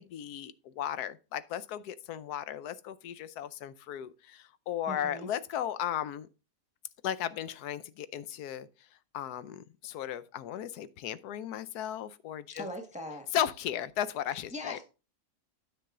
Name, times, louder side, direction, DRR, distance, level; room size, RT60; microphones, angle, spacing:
voice 1, 0.0-6.3 7.0-8.7 9.1-12.7 13.3-14.8, left 10 dB, 80° left, 1.2 m, -36 dB
voice 2, 4.9-5.3 12.5-13.3 14.5-14.8, left 1 dB, 5° right, 1.3 m, -40 dB
9.5 x 6.9 x 3.7 m
omnidirectional pair, 1.7 m